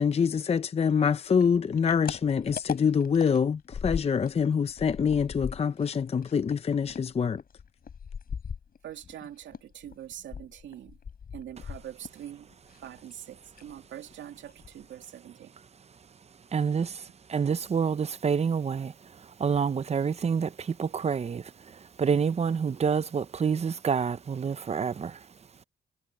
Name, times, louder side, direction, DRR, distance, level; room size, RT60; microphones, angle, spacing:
voice 1, 0.0-7.4, left 6 dB, 30° left, 0.6 m, -25 dB
sound 1, 1.4-4.4 4.7-9.2 9.5-12.3 12.5-13.2 13.5-13.8 14.1-14.2 14.5-15.0, left 6 dB, 45° left, 6.7 m, -39 dB
voice 2, 8.8-11.0 11.3-12.5 12.8-15.5, right 11 dB, 70° right, 2.4 m, -44 dB
voice 3, 16.5-25.3, right 6 dB, 35° right, 0.8 m, -28 dB
cardioid pair, 90°, 20 cm